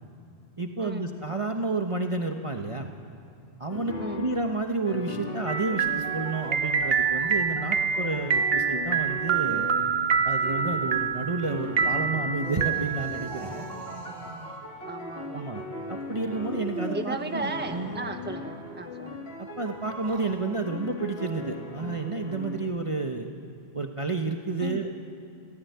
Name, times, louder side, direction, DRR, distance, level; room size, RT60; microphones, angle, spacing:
voice 1, 0.6-2.9 3.6-9.7 10.2-13.7 15.3-15.6 15.9-17.9 19.6-23.3 23.7-25.0, right 3 dB, 25° right, 3 dB, 1.2 m, -30 dB
sound 1, 3.7-10.2 10.4-11.1 11.4-17.0 17.4-22.6, left 2 dB, 55° left, 3.4 m, -39 dB
sound 2, 5.5-13.4, right 6 dB, 55° right, 1.1 m, -26 dB
sound 3, 12.3-14.6 16.5-18.3 19.9-20.4, right 2 dB, 80° right, 2.7 m, -40 dB
voice 2, 14.9-15.4 16.9-19.2 24.6-24.9, right 2 dB, 10° right, 5 dB, 1.3 m, -35 dB
30.0 x 15.5 x 9.5 m, 2.4 s
omnidirectional pair, 1.2 m